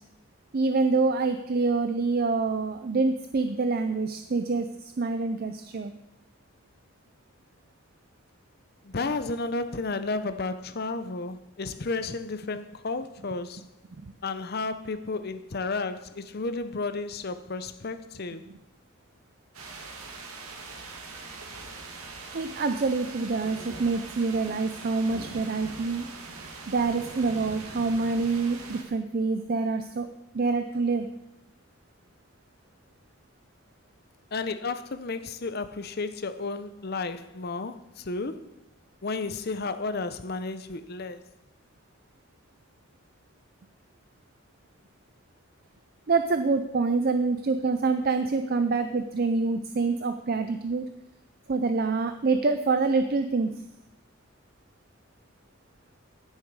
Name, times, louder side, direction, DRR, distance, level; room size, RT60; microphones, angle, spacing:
voice 1, 0.5-5.9 22.3-26.1 26.7-30.1 30.3-31.1 46.1-50.9 51.5-53.5, right 4 dB, 45° right, 0.5 m, -26 dB
voice 2, 8.8-13.7 14.2-18.5 34.3-38.6 39.0-41.3, left 3 dB, 45° left, 0.7 m, -32 dB
sound 1, 19.5-28.8, right 3 dB, 85° right, 2.2 m, -42 dB
15.5 x 7.4 x 4.8 m
head